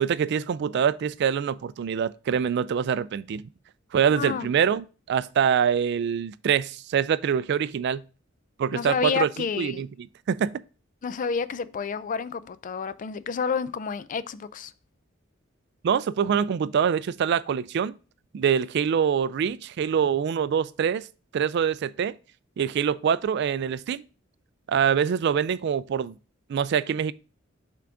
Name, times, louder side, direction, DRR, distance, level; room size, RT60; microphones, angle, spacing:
voice 1, 0.0-3.4 3.9-8.0 8.6-9.3 9.6-9.9 10.3-10.5 15.8-17.9 18.3-21.1 21.3-22.1 22.6-24.0 24.7-26.2 26.5-27.1, right 7 dB, 60° right, 0.3 m, -24 dB
voice 2, 4.1-4.5 8.7-9.9 11.0-14.7, left 6 dB, 40° left, 0.4 m, -30 dB
5.8 x 3.7 x 4.9 m
head